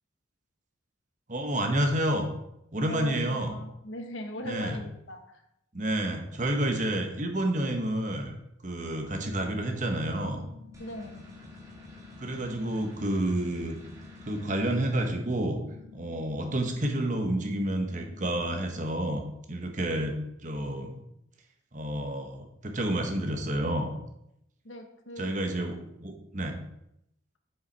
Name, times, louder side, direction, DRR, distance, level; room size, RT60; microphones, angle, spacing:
voice 1, 1.3-2.3 2.7-3.5 4.4-4.8 5.7-8.4 8.6-10.4 12.2-13.8 14.3-15.6 15.9-19.2 19.5-21.0 21.7-23.9 25.2-26.6, right 1 dB, 40° right, 4 dB, 1.1 m, -29 dB
voice 2, 2.8-5.4 10.8-11.2 24.6-25.3, equal, 80° left, 5 dB, 1.1 m, -40 dB
sound 1, 9.2-19.2, left 8 dB, 65° right, 1.1 m, -51 dB
sound 2, 10.7-15.1, right 1 dB, 15° right, 1.6 m, -50 dB
7.2 x 6.4 x 4.1 m, 0.80 s
head